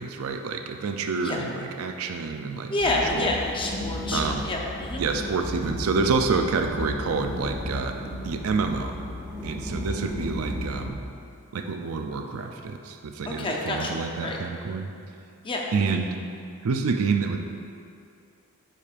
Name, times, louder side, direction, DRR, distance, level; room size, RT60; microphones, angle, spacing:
voice 1, 0.0-3.3 4.1-4.5 5.0-8.0 8.2-9.0 9.4-11.0 11.5-14.9 15.7-16.1 16.6-17.4, right 4 dB, 75° right, 5 dB, 0.4 m, -28 dB
voice 2, 2.7-5.0 13.3-14.4 15.4-16.0, left 2 dB, 25° left, -1 dB, 0.6 m, -29 dB
sound 1, 2.8-10.9, left 1 dB, 10° right, 0.9 m, -34 dB
9.9 x 5.0 x 2.5 m, 2.5 s
head